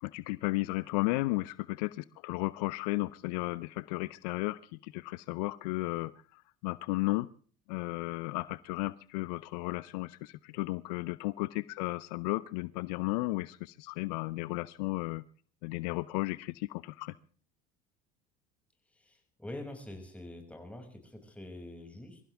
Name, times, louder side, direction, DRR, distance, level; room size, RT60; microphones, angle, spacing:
voice 1, 0.0-7.3 7.7-15.2 15.6-17.1, left 22 dB, 75° left, 18 dB, 0.6 m, -34 dB
voice 2, 18.9-22.2, left 1 dB, 5° left, 3 dB, 6.5 m, -45 dB
24.5 x 15.5 x 3.5 m, 0.42 s
hypercardioid pair, 70°, 21 cm